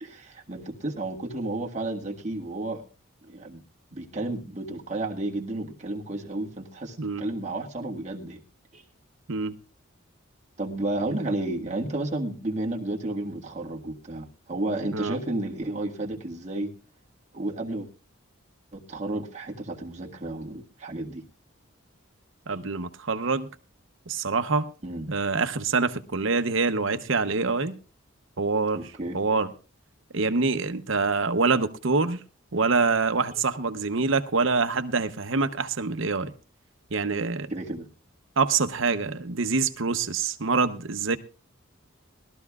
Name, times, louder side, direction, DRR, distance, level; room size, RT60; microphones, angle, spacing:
voice 1, 0.0-2.8 3.2-3.6 3.9-8.4 8.7-8.8 10.6-16.7 17.3-17.9 18.7-21.2 22.5-22.6 24.8-25.1 28.7-29.2 37.5-37.9, right 2 dB, 35° right, 1.7 m, -32 dB
voice 2, 22.5-23.5 24.1-24.7 25.1-27.8 28.4-28.8 29.1-29.5 30.1-32.2 32.5-36.3 36.9-37.5 38.4-41.2, right 4 dB, 65° right, 0.8 m, -25 dB
21.0 x 13.0 x 2.4 m
head